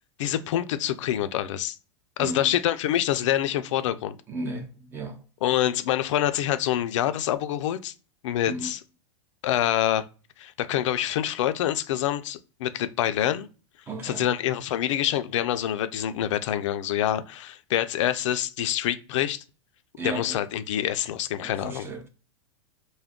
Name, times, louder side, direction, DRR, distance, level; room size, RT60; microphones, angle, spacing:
voice 1, 0.2-1.8 2.2-4.2 5.4-7.9 8.2-8.8 9.4-10.0 10.4-13.5 14.0-19.4 20.0-21.9, left 12 dB, 80° left, 0.4 m, -26 dB
voice 2, 2.2-2.5 4.3-5.2 8.4-8.7 13.9-14.3 20.0-20.4 21.4-22.1, right 3 dB, 15° right, 0.5 m, -35 dB
2.3 x 2.2 x 3.5 m
supercardioid pair, 145°, 16 cm